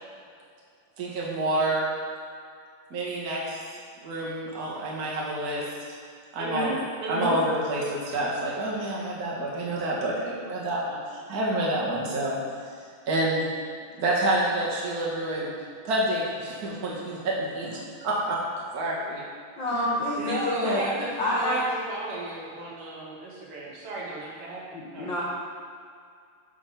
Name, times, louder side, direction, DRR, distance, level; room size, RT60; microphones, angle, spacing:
voice 1, 1.0-1.9 2.9-5.6 6.3-6.8 7.1-12.3 13.1-13.4 14.0-15.5 15.8-18.4 18.7-19.2 19.7-19.9, right 1 dB, 45° right, -4 dB, 1.2 m, -28 dB
voice 2, 6.4-6.8 7.0-7.3 20.2-24.6 24.9-25.1, right 1 dB, 75° right, -5 dB, 3.1 m, -33 dB
voice 3, 19.6-20.8 21.2-21.6 24.7-25.2, left 1 dB, 80° left, -6 dB, 1.0 m, -28 dB
9.5 x 3.8 x 5.6 m, 2.2 s
omnidirectional pair, 3.7 m